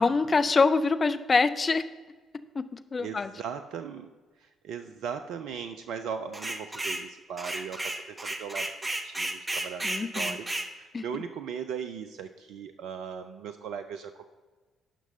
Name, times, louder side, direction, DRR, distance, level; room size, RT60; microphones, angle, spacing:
voice 1, 0.0-1.8 2.6-3.3 9.8-10.4 10.9-11.0, left 4 dB, 35° left, 10 dB, 0.5 m, -25 dB
voice 2, 3.0-4.1 4.4-14.2, right 7 dB, 65° right, 8 dB, 0.4 m, -38 dB
sound 1, 6.3-7.1 7.4-10.7, right 1 dB, 20° right, 0.9 m, -33 dB
16.0 x 6.0 x 2.7 m, 1.3 s
figure-of-eight pair, 45°, 0 cm